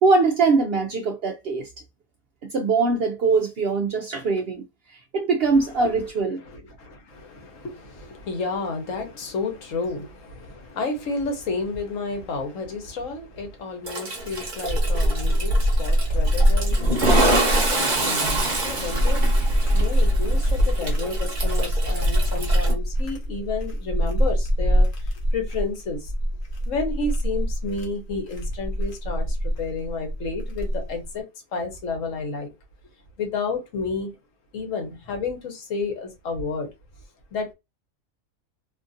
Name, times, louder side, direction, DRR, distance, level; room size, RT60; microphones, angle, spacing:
voice 1, 0.0-1.7 2.5-4.6 5.1-6.4, right 4 dB, 65° right, 0.6 m, -22 dB
voice 2, 6.4-19.2 19.7-26.1 26.7-31.3 31.5-32.5 33.2-34.1 34.5-36.7 37.3-37.5, left 4 dB, 70° left, 1.2 m, -31 dB
Toilet flush, 13.9-22.7, right 2 dB, 40° right, 0.9 m, -27 dB
sound 1, 14.2-31.0, equal, 50° left, 0.8 m, -23 dB
2.8 x 2.5 x 2.6 m
omnidirectional pair, 1.4 m